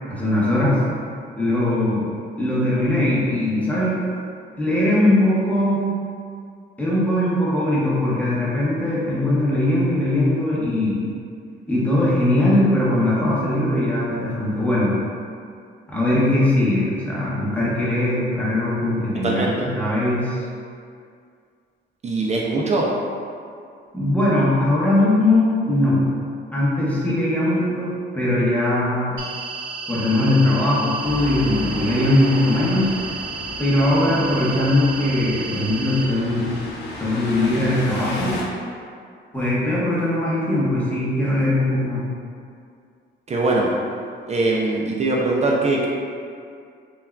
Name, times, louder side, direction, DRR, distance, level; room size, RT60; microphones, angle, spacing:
voice 1, 0.1-0.8 1.4-2.0 2.4-4.0 4.6-5.8 6.8-11.0 11.7-14.9 15.9-19.4 19.7-20.4 23.9-26.0 26.5-29.1 29.9-32.9 33.6-36.5 37.0-38.3 39.3-42.0, left 1 dB, 5° left, -8 dB, 0.9 m, -20 dB
voice 2, 19.2-19.7 22.0-22.9 43.3-43.7 44.3-45.9, right 2 dB, 35° right, -3 dB, 0.4 m, -21 dB
sound 1, 29.2-36.0, right 4 dB, 75° right, 0.7 m, -32 dB
sound 2, 31.0-38.4, left 2 dB, 60° left, 0.5 m, -33 dB
3.4 x 2.3 x 2.2 m, 2.3 s
cardioid pair, 90°, 20 cm